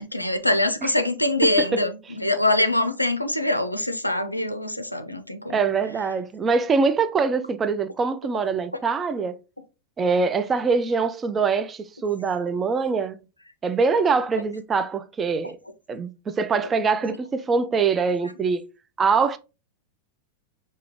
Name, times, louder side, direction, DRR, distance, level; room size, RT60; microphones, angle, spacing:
voice 1, 0.0-5.6, left 1 dB, 85° left, 0.4 m, -24 dB
voice 2, 5.5-9.4 10.0-13.2 13.6-15.6 15.9-18.6 19.0-19.4, right 5 dB, 20° right, 0.4 m, -23 dB
4.9 x 2.8 x 2.9 m
figure-of-eight pair, 90°, 0 cm